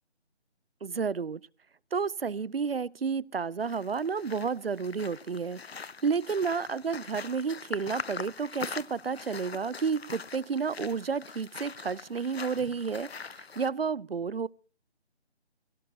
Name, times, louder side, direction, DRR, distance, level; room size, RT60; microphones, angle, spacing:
voice 1, 0.8-1.4 1.9-14.5, right 5 dB, 60° right, 25 dB, 0.5 m, -31 dB
sound 1, 3.6-13.7, left 5 dB, 65° left, 0.8 m, -43 dB
17.5 x 16.5 x 2.8 m, 0.38 s
figure-of-eight pair, 175°, 34 cm